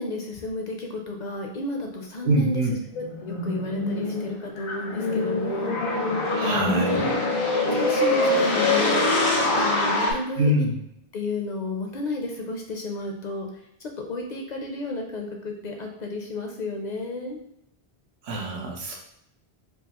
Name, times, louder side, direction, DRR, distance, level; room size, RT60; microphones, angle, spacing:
voice 1, 0.0-2.6 2.9-5.8 6.7-7.2 7.8-9.2 9.6-10.5 11.1-13.5 14.0-17.4, left 2 dB, 55° left, 2 dB, 0.6 m, -32 dB
voice 2, 2.2-2.8 6.3-7.2 10.4-10.8 18.2-19.0, right 1 dB, 90° right, 0 dB, 1.0 m, -25 dB
sound 1, 2.7-10.1, left 2 dB, 80° left, 1.2 m, -24 dB
4.6 x 2.3 x 2.9 m, 0.78 s
omnidirectional pair, 1.1 m